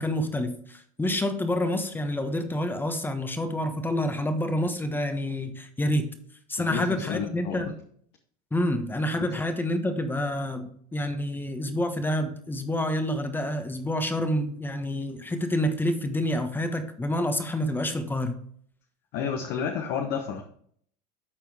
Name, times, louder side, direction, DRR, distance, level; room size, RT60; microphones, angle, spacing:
voice 1, 0.0-6.1 6.5-7.7 8.5-18.4, left 1 dB, 10° left, 7 dB, 1.2 m, -28 dB
voice 2, 6.6-7.7 19.1-20.4, left 7 dB, 55° left, 3 dB, 1.2 m, -31 dB
13.0 x 4.4 x 3.5 m, 0.62 s
hypercardioid pair, 100°, 21 cm